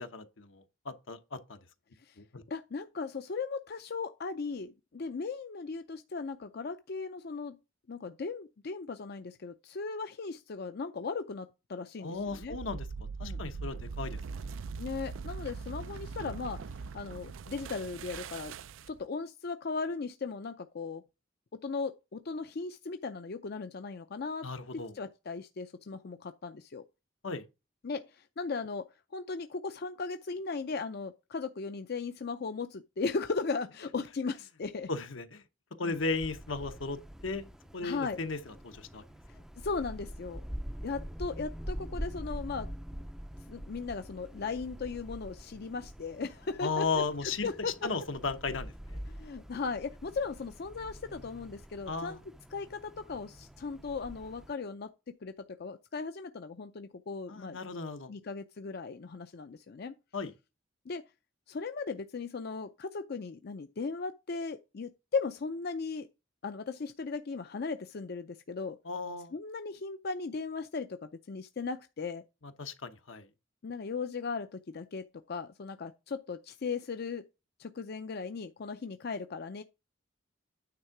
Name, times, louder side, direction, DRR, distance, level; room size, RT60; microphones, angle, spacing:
voice 1, 0.0-1.6 2.3-2.4 12.0-12.9 13.2-14.5 24.4-24.9 27.2-27.4 34.9-35.4 35.8-37.5 37.7-39.0 46.6-47.5 47.8-49.0 51.9-52.2 57.3-58.1 60.1-60.3 68.8-69.3 72.4-73.3, left 4 dB, 80° left, 1.0 m, -35 dB
voice 2, 2.5-7.6 7.9-12.6 13.2-13.4 14.8-16.6 16.9-18.6 18.9-21.0 21.6-26.8 27.8-28.9 29.1-34.9 35.8-36.0 37.8-38.2 39.6-40.4 40.8-42.7 43.5-46.9 47.2-47.9 49.1-52.2 52.5-54.9 55.2-55.3 55.6-57.6 58.1-59.9 60.9-61.0 61.5-66.1 66.4-68.8 69.3-72.2 73.6-77.2 77.6-79.6, left 4 dB, 55° left, 0.5 m, -37 dB
sound 1, 12.2-19.1, right 5 dB, 85° right, 0.4 m, -41 dB
Wind, 35.9-54.5, equal, 5° right, 0.4 m, -45 dB
9.5 x 3.6 x 5.9 m
head